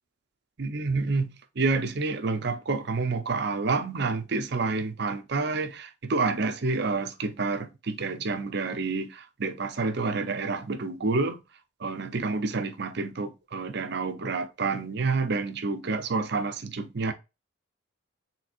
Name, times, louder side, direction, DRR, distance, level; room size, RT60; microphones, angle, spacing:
voice 1, 0.6-11.4 11.8-17.1, right 3 dB, 55° right, 0.6 m, -29 dB
4.4 x 3.5 x 2.5 m
head